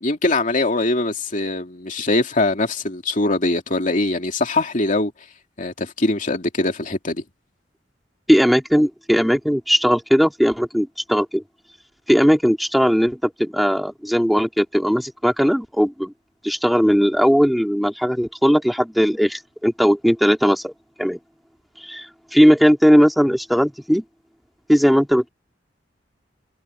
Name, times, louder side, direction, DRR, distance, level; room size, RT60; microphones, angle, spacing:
voice 1, 0.0-5.1 5.6-7.2, left 2 dB, 45° left, 2.6 m, -22 dB
voice 2, 8.3-11.4 12.1-16.1 16.4-20.7 21.0-21.2 21.8-24.0 24.7-25.3, equal, ahead, 2.8 m, -18 dB
head